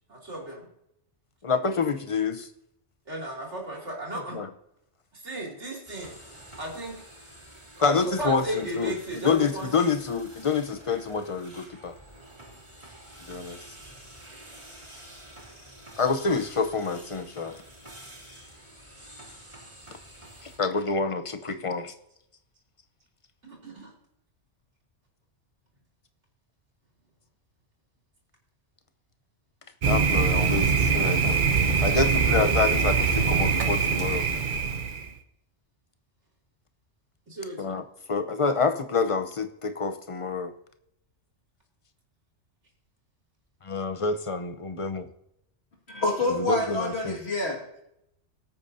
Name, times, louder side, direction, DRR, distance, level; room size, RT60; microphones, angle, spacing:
voice 1, 0.1-0.7 3.1-4.4 5.1-6.2 6.6-7.0 7.8-9.9 23.4-23.9 37.3-37.7, right 1 dB, 75° right, -2 dB, 3.2 m, -35 dB
voice 2, 1.4-2.5 4.3-4.5 7.8-11.9 13.3-13.6 16.0-17.6 20.4-21.9 29.9-31.4 31.8-34.3 37.6-37.8 38.1-40.5 43.6-45.1 46.3-47.2, left 4 dB, 30° left, 8 dB, 0.7 m, -27 dB
sound 1, 5.9-20.6, right 1 dB, 30° right, 3.5 m, -48 dB
Thunder, 29.8-35.1, right 5 dB, 45° right, 0.9 m, -23 dB
voice 3, 45.9-47.8, left 1 dB, 60° left, -1 dB, 2.3 m, -27 dB
19.5 x 8.7 x 2.7 m, 0.78 s
omnidirectional pair, 1.2 m